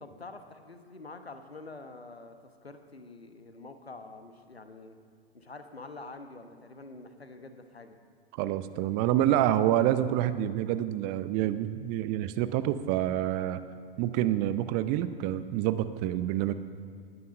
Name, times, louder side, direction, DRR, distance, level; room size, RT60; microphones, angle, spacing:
voice 1, 0.0-5.0 5.3-8.0, left 3 dB, 85° left, 8 dB, 1.2 m, -46 dB
voice 2, 8.4-13.6 14.0-16.5, right 12 dB, 30° right, 13 dB, 0.6 m, -27 dB
19.0 x 9.6 x 5.3 m, 2.1 s
figure-of-eight pair, 100°, 30 cm